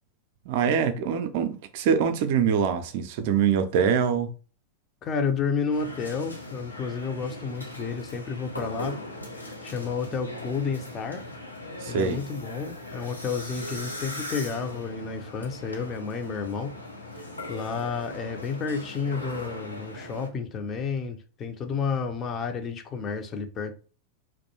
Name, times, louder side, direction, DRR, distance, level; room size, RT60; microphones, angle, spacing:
voice 1, 0.5-4.3 11.8-12.2, right 7 dB, 50° right, 0.4 m, -24 dB
voice 2, 5.0-9.0 9.6-11.2 11.9-16.7 17.5-23.7, left 5 dB, 25° left, 0.4 m, -31 dB
sound 1, 5.7-20.3, left 1 dB, 85° left, 0.5 m, -39 dB
2.3 x 2.1 x 2.9 m
figure-of-eight pair, 90°, 0 cm